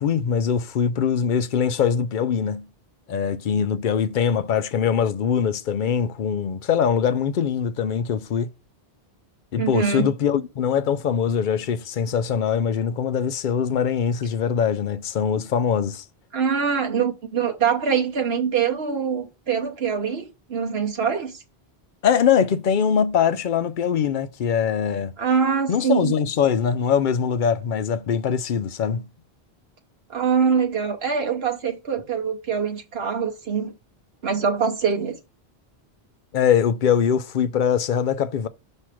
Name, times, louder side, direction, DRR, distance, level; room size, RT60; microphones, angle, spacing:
voice 1, 0.0-2.7 3.1-8.5 9.5-16.0 22.0-25.1 25.7-29.1 36.3-38.5, left 7 dB, 60° left, 0.7 m, -22 dB
voice 2, 9.6-10.1 16.3-21.4 25.2-26.1 30.1-33.7 34.2-35.2, right 6 dB, 75° right, 1.1 m, -24 dB
6.1 x 3.2 x 5.8 m
omnidirectional pair, 1.0 m